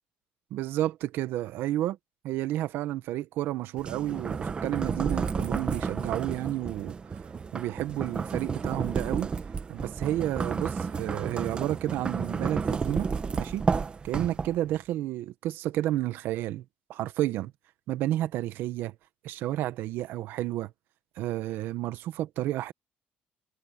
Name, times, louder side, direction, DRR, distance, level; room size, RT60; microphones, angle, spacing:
voice 1, 0.5-2.0 2.2-7.2 7.5-9.3 9.7-13.6 14.0-16.6 16.9-17.5 17.9-18.9 19.2-20.7 21.2-22.7, right 14 dB, 75° right, 1.3 m, -31 dB
sound 1, 3.8-14.8, right 5 dB, 25° right, 1.3 m, -32 dB
cardioid pair, 125°, 4 cm